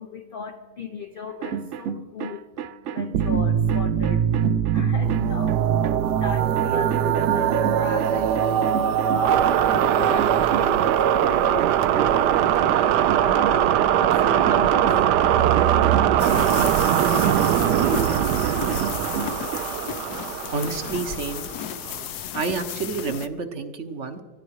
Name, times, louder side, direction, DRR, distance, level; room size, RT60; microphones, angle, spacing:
voice 1, 0.0-15.5, left 5 dB, 50° left, 4 dB, 0.6 m, -38 dB
sound 1, 1.3-6.2 6.6-19.7, right 8 dB, 70° right, 0.7 m, -33 dB
sound 2, 3.1-21.6, right 10 dB, 90° right, 1.3 m, -21 dB
sound 3, 16.2-23.3, left 9 dB, 70° left, 1.2 m, -33 dB
voice 2, 20.5-21.5 21.8-22.1 22.3-24.2, right 4 dB, 50° right, 8 dB, 1.2 m, -29 dB
20.0 x 14.0 x 4.7 m, 1.4 s
omnidirectional pair, 1.8 m